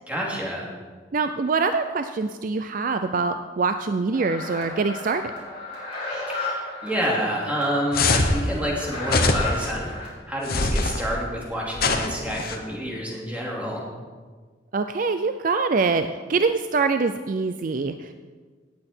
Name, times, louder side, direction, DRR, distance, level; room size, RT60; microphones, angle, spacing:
voice 1, 0.1-0.7 6.3-13.8, equal, 10° right, -4 dB, 2.8 m, -29 dB
voice 2, 1.1-5.2 14.7-18.1, right 4 dB, 45° right, 9 dB, 0.4 m, -24 dB
sound 1, 4.1-10.1, left 2 dB, 30° left, 4.4 m, -34 dB
sound 2, 7.9-8.4 9.1-9.7 10.5-11.0 11.8-12.6, left 3 dB, 55° left, 1.0 m, -23 dB
17.5 x 8.6 x 4.5 m, 1.5 s
head